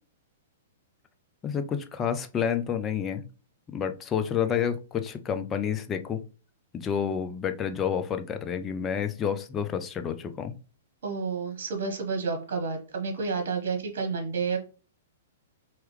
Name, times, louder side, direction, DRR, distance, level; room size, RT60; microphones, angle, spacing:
voice 1, 1.4-3.2 3.7-6.2 6.7-10.6, left 8 dB, 20° left, 7 dB, 0.6 m, -29 dB
voice 2, 11.0-14.6, right 5 dB, 65° right, 4 dB, 1.3 m, -30 dB
4.7 x 3.0 x 3.2 m, 0.34 s
hypercardioid pair, 115°, 0 cm